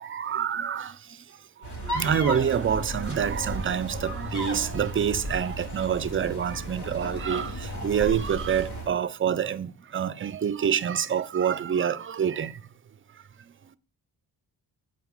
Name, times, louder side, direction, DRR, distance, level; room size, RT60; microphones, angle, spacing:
voice 1, 0.0-0.9 1.9-7.5 7.8-12.5, right 8 dB, 35° right, 0.4 m, -27 dB
sound 1, 1.6-8.9, equal, 70° left, 1.6 m, -34 dB
8.6 x 4.6 x 3.7 m
cardioid pair, 100°, 41 cm